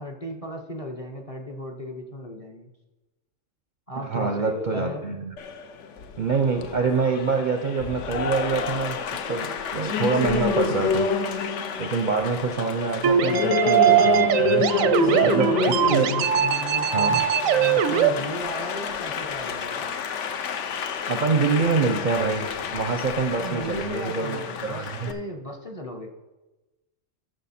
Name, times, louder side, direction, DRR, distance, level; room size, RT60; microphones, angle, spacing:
voice 1, 0.0-2.7 3.9-5.0 14.8-15.7 16.4-20.0 23.4-26.1, equal, 30° left, 2 dB, 0.8 m, -35 dB
voice 2, 4.1-5.4 6.2-9.0 9.3-11.1 11.8-14.6 15.2-16.1 16.9-17.2 21.1-25.1, right 4 dB, 50° right, 5 dB, 0.6 m, -26 dB
Applause, 5.4-25.1, left 6 dB, 70° left, 1.0 m, -29 dB
sound 1, 13.0-18.1, right 10 dB, 85° right, 1.0 m, -21 dB
13.0 x 6.4 x 4.2 m, 1.1 s
omnidirectional pair, 1.4 m